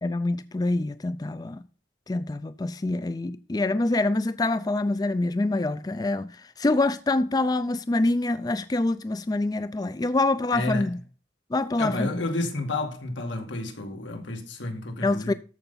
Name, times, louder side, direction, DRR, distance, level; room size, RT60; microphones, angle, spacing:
voice 1, 0.0-1.6 2.1-11.0 11.5-12.1 15.0-15.3, left 2 dB, 20° left, 0.3 m, -26 dB
voice 2, 10.5-10.9 11.8-15.3, left 2 dB, 85° left, 2.2 m, -30 dB
13.5 x 5.4 x 4.0 m
head